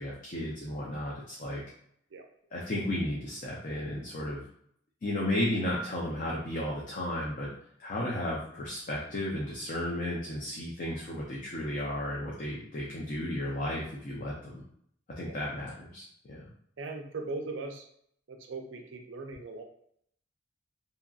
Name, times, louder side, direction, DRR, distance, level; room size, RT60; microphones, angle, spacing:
voice 1, 0.0-1.6 2.5-4.4 5.0-7.5 7.8-14.6 15.2-16.4, left 1 dB, 45° left, -4 dB, 0.5 m, -34 dB
voice 2, 16.8-17.9 18.3-19.6, right 3 dB, 75° right, 4 dB, 0.5 m, -39 dB
2.8 x 2.5 x 2.3 m, 0.68 s
head